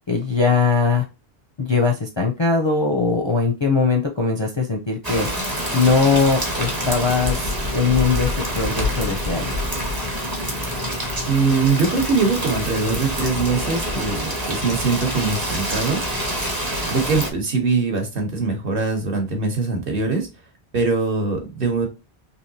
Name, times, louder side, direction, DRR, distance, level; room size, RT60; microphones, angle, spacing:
voice 1, 0.1-1.0 1.6-5.3 5.7-9.4, left 4 dB, 40° left, 0 dB, 0.4 m, -20 dB
Rain, 5.0-17.3, equal, 25° right, 0.7 m, -26 dB
voice 2, 11.3-16.0 16.9-20.3 20.7-21.9, right 4 dB, 60° right, 3 dB, 1.2 m, -22 dB
3.3 x 2.7 x 2.7 m, 0.27 s
omnidirectional pair, 1.1 m